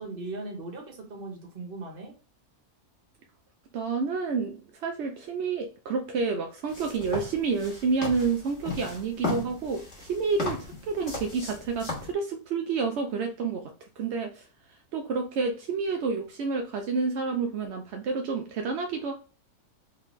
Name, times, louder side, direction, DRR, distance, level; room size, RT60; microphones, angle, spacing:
voice 1, 0.0-2.1, right 2 dB, 40° right, 1 dB, 1.2 m, -38 dB
voice 2, 3.7-13.6 14.0-14.5 14.9-19.1, right 4 dB, 65° right, 3 dB, 0.7 m, -29 dB
sound 1, 6.7-12.1, left 3 dB, 50° left, 1.6 m, -36 dB
3.6 x 3.3 x 3.1 m, 0.36 s
omnidirectional pair, 1.6 m